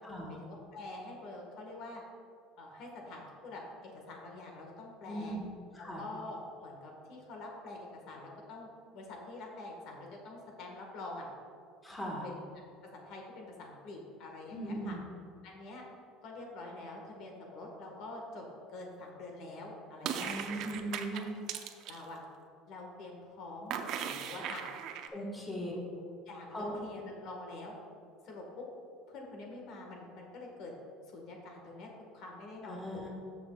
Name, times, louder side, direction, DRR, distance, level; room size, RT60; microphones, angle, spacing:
voice 1, 0.4-2.0 2.6-5.4 5.8-8.7 8.9-11.3 12.2-12.5 12.9-15.0 15.4-15.9 16.2-18.5 18.7-20.3 21.1-21.2 21.9-22.2 22.7-24.6 25.5-25.8 26.3-27.7 28.2-28.6 29.1-30.7 31.1-33.1, left 2 dB, 55° left, 0 dB, 1.5 m, -46 dB
voice 2, 5.1-5.5 5.7-6.0 11.8-12.2 14.5-15.0 20.2-21.3 25.1-25.7 26.5-26.7 32.6-33.1, right 1 dB, 10° left, -3 dB, 1.4 m, -39 dB
sound 1, 20.0-22.0 23.7-25.1, right 8 dB, 55° right, 0.5 m, -38 dB
14.0 x 6.1 x 2.3 m, 2.4 s
cardioid pair, 145°, 0 cm